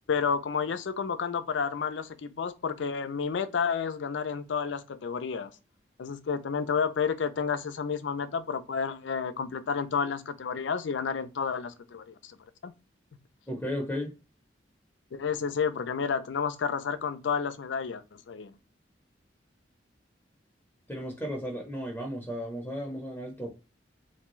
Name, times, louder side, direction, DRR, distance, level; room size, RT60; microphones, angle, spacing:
voice 1, 0.1-5.5 6.0-12.3 12.6-12.7 15.1-18.5, left 6 dB, 85° left, 0.4 m, -30 dB
voice 2, 13.5-14.1 20.9-23.5, equal, 10° left, 0.7 m, -34 dB
3.5 x 2.6 x 3.0 m
head